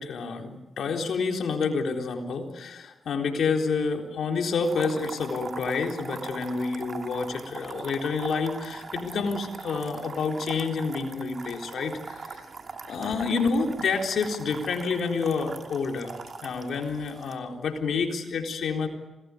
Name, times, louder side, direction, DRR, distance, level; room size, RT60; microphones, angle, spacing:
voice 1, 0.0-12.4 12.9-16.1 16.4-18.9, left 4 dB, 75° left, 3 dB, 3.9 m, -28 dB
sound 1, 4.6-17.4, right 4 dB, 55° right, 2.9 m, -41 dB
27.0 x 20.0 x 9.7 m, 1.1 s
cardioid pair, 60°, 0 cm